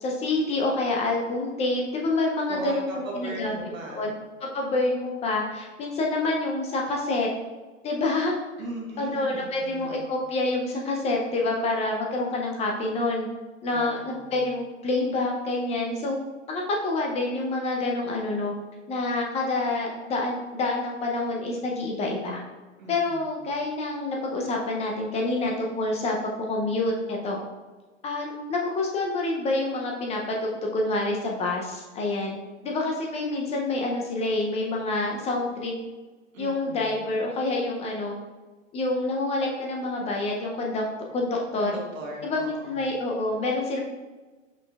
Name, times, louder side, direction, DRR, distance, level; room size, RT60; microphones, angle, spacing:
voice 1, 0.0-3.5 3.9-4.1 4.4-7.3 7.8-8.3 9.0-13.3 13.6-16.2 16.5-18.5 18.9-22.4 22.9-27.4 28.0-32.4 32.6-35.7 36.4-38.2 38.7-40.8 41.1-41.8 42.2-43.8, left 2 dB, 15° left, 0 dB, 0.4 m, -27 dB
voice 2, 2.5-4.1 8.6-10.1 13.7-14.4 22.8-23.4 36.3-37.0 41.6-42.8, right 1 dB, 85° right, -1 dB, 1.5 m, -38 dB
5.5 x 4.2 x 2.3 m, 1.2 s
hypercardioid pair, 110°, 39 cm